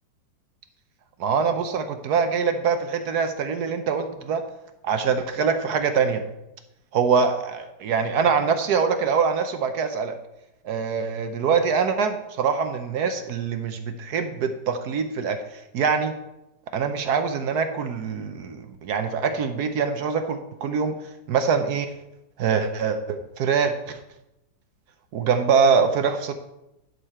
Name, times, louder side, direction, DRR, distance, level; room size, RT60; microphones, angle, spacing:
voice 1, 1.2-4.4 4.8-6.2 6.9-10.2 10.6-16.1 16.7-21.0 21.3-21.9 22.4-24.0 25.1-26.3, right 6 dB, 65° right, 8 dB, 1.1 m, -24 dB
11.0 x 6.5 x 4.3 m, 0.91 s
omnidirectional pair, 2.0 m